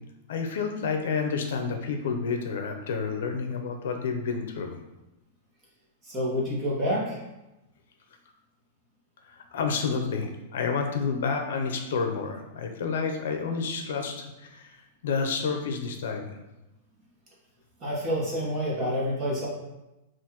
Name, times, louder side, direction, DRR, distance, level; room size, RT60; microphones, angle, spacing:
voice 1, 0.3-4.8 9.3-16.3, left 5 dB, 70° left, 4 dB, 0.6 m, -30 dB
voice 2, 6.0-7.2 17.8-19.5, equal, 20° right, -5 dB, 1.2 m, -28 dB
5.5 x 2.6 x 3.0 m, 0.98 s
supercardioid pair, 170°, 0 cm